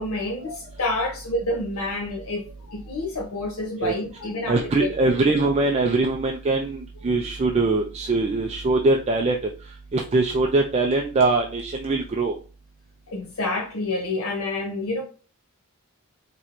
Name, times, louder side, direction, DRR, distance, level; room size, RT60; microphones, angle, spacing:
voice 1, 0.0-4.9 13.1-15.0, left 2 dB, 70° left, 0.7 m, -28 dB
voice 2, 4.5-9.4 9.9-12.3, right 3 dB, 30° right, 0.3 m, -22 dB
4.4 x 3.0 x 2.5 m
head